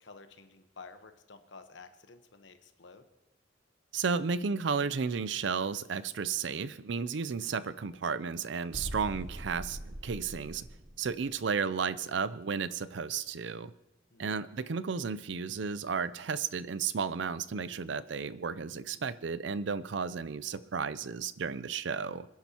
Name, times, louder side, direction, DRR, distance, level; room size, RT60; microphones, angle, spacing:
voice 1, 0.0-3.0 14.1-14.3, left 4 dB, 75° left, 8 dB, 1.1 m, -52 dB
voice 2, 3.9-10.7 11.0-13.7 14.2-22.3, right 5 dB, 75° right, 16 dB, 0.5 m, -33 dB
sound 1, 8.7-11.5, right 1 dB, 40° right, 1.0 m, -42 dB
27.5 x 10.5 x 2.9 m, 0.95 s
head